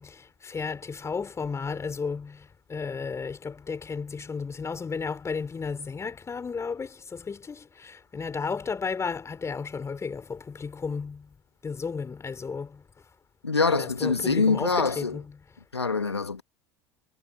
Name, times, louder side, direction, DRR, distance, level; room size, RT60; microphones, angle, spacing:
voice 1, 0.0-11.3 11.6-12.8 13.7-15.4, left 5 dB, 20° left, 4.2 m, -33 dB
voice 2, 13.4-15.2 15.7-16.4, left 4 dB, 90° left, 2.0 m, -24 dB
figure-of-eight pair, 75°, 13 cm